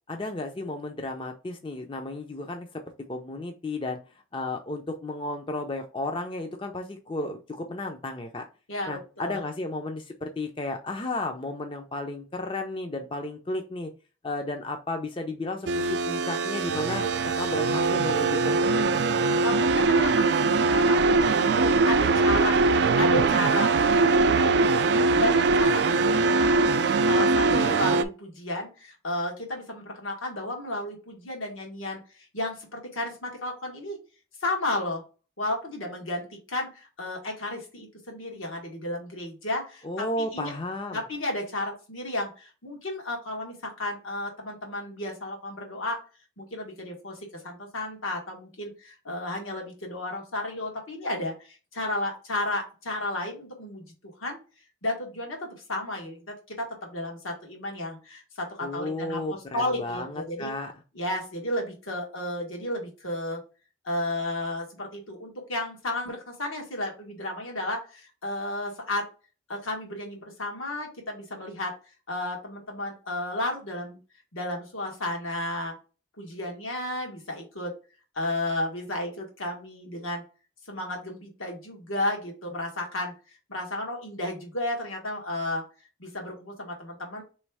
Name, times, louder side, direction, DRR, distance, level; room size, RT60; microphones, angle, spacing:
voice 1, 0.1-2.8 3.1-8.5 8.9-13.9 14.2-19.0 27.5-27.8 39.8-41.0 58.6-60.7, left 2 dB, 25° left, 4 dB, 0.4 m, -33 dB
voice 2, 8.7-9.4 19.4-24.5 25.1-26.6 27.1-32.0 32.3-34.0 34.4-35.0 35.4-40.1 40.3-40.5 40.9-46.0 46.4-47.2 47.4-53.8 54.2-54.4 54.8-59.2 59.5-60.5 60.9-63.4 63.8-69.1 69.5-71.7 72.1-74.0 74.3-75.7 76.2-77.7 78.1-80.2 80.7-83.1 83.5-85.6 86.0-87.2, left 1 dB, 85° left, 1 dB, 1.5 m, -33 dB
sound 1, 15.7-28.0, right 3 dB, 55° right, 0.3 m, -22 dB
3.4 x 3.2 x 4.7 m, 0.34 s
head